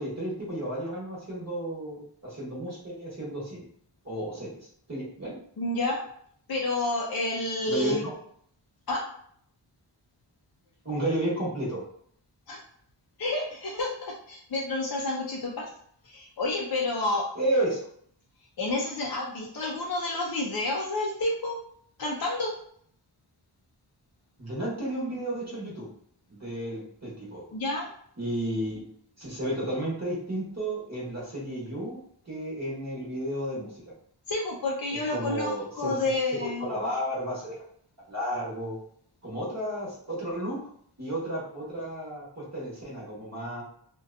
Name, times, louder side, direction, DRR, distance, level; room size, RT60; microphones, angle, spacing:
voice 1, 0.0-3.6 4.0-4.6 4.9-5.3 7.7-8.1 10.8-11.8 17.3-17.9 24.4-25.9 26.3-27.4 28.2-28.8 29.2-32.0 32.2-33.8 35.1-36.1 36.4-37.6 38.1-38.8 39.2-40.6 41.0-43.6, right 1 dB, 35° right, -6 dB, 1.1 m, -32 dB
voice 2, 5.6-6.0 6.5-8.0 8.9-9.1 12.5-12.6 13.2-15.7 16.0-17.3 18.6-21.6 22.0-22.5 27.5-27.9 34.3-36.7, left 2 dB, 50° left, -2 dB, 0.5 m, -29 dB
2.6 x 2.2 x 2.5 m, 0.63 s
wide cardioid pair, 60°, 45 cm